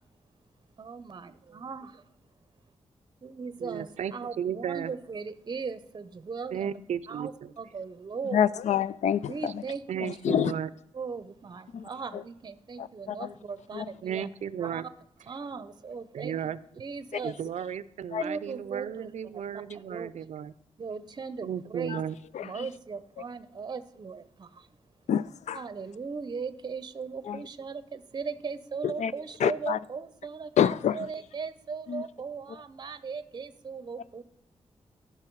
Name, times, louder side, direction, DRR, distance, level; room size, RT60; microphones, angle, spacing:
voice 1, 0.8-2.0 3.2-6.7 7.1-8.4 9.3-10.0 10.9-14.3 14.6-14.8 15.3-16.3 16.7-17.3 18.2-19.2 19.5-20.1 20.8-22.0 22.4-24.7 25.5-34.2, right 5 dB, 35° right, 0.6 m, -38 dB
voice 2, 3.6-4.9 6.5-7.5 9.9-10.7 14.0-14.9 16.1-16.6 17.2-20.5 21.4-22.1, right 9 dB, 75° right, 0.4 m, -34 dB
voice 3, 8.3-9.6 10.0-10.5 11.7-12.2 12.8-13.3 13.7-13.9 17.1-17.2 18.1-18.2 21.9-22.0 22.3-22.7 25.1-25.6 27.2-27.4 28.8-29.1 29.4-29.8 30.6-31.1 31.9-32.0, left 9 dB, 80° left, 0.4 m, -28 dB
14.0 x 5.8 x 4.6 m
wide cardioid pair, 105°, 12 cm